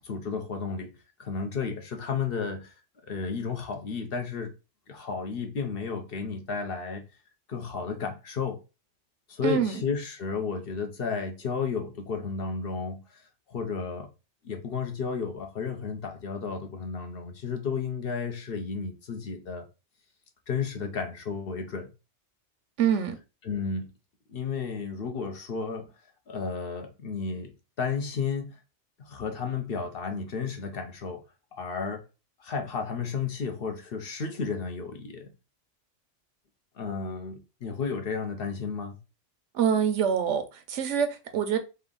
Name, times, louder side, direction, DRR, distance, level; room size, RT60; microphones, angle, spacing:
voice 1, 0.0-0.9 1.2-2.8 3.0-4.5 4.9-7.0 7.5-8.6 9.3-14.1 14.4-19.6 20.5-21.9 23.4-23.9 24.3-25.9 26.3-27.5 27.8-28.6 29.0-31.2 31.5-32.0 32.4-35.3 36.7-39.0, left 5 dB, 55° left, 0.9 m, -32 dB
voice 2, 9.4-9.8 22.8-23.2 39.5-41.6, right 8 dB, 80° right, 1.0 m, -25 dB
3.4 x 2.6 x 3.7 m
omnidirectional pair, 1.2 m